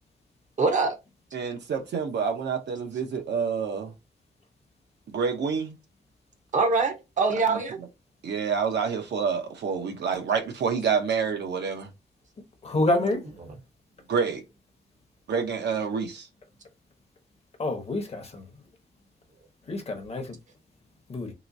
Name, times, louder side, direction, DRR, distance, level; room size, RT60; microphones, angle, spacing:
voice 1, 0.6-0.9 6.5-7.8 12.9-13.2 13.5-13.6, right 3 dB, 45° right, 0.7 m, -24 dB
voice 2, 1.3-3.9 5.1-5.8 7.5-7.6 8.2-11.9 14.1-14.4 15.3-16.3, right 6 dB, 75° right, 0.8 m, -28 dB
voice 3, 12.6-13.2 17.6-18.4 19.7-20.2 21.1-21.3, left 2 dB, 35° left, 0.8 m, -27 dB
3.0 x 2.9 x 2.6 m
wide cardioid pair, 155°, 18 cm